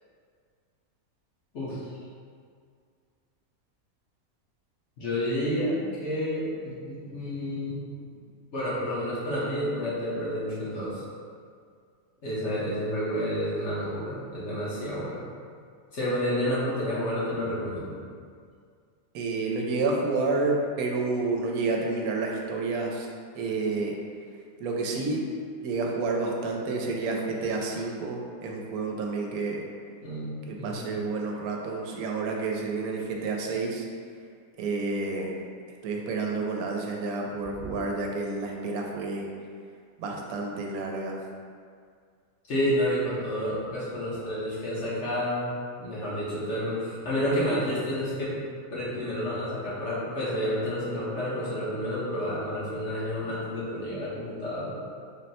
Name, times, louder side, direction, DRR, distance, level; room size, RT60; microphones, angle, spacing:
voice 1, 5.0-7.8 8.5-11.0 12.2-15.2 15.9-18.0 30.0-30.9 42.5-45.5 45.8-48.4 48.7-54.7, equal, 55° left, -8 dB, 1.2 m, -30 dB
voice 2, 19.1-23.1 23.3-24.0 24.6-25.3 25.6-29.6 30.5-33.9 34.6-35.3 35.8-39.3 40.0-41.2, right 3 dB, 85° right, 0 dB, 1.1 m, -29 dB
3.8 x 2.1 x 4.1 m, 2.1 s
omnidirectional pair, 1.5 m